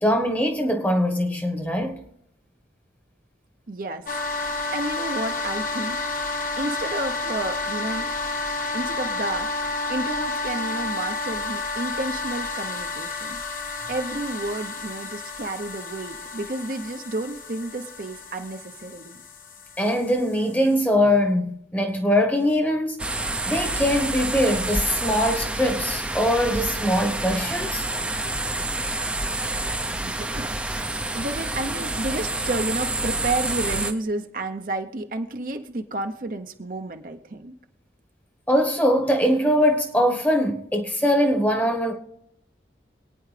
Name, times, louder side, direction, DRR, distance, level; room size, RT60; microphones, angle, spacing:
voice 1, 0.0-2.0 19.8-27.9 38.5-41.9, equal, 10° left, 1.1 m, -22 dB
voice 2, 3.7-4.1 4.7-6.0 6.6-8.1 8.7-9.5 9.9-13.4 13.9-19.2 30.0-30.6 31.1-37.5, right 2 dB, 50° right, 0.7 m, -31 dB
sound 1, 4.1-20.8, left 3 dB, 50° left, 1.3 m, -31 dB
sound 2, 23.0-33.9, right 2 dB, 5° right, 0.6 m, -28 dB
26.0 x 9.4 x 3.3 m
head